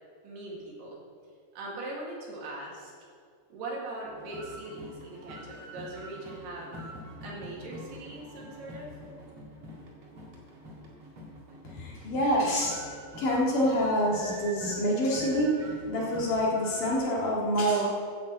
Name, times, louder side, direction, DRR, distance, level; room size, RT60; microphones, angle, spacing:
voice 1, 0.2-1.0 1.5-2.9 3.5-6.7 7.2-8.9, right 2 dB, 75° right, -3 dB, 4.2 m, -40 dB
sound 1, 4.0-17.0, equal, 40° right, 2.1 m, -45 dB
voice 2, 11.6-12.8 13.2-17.9, equal, 55° left, -4 dB, 3.3 m, -27 dB
11.0 x 7.0 x 7.9 m, 2.1 s
omnidirectional pair, 4.8 m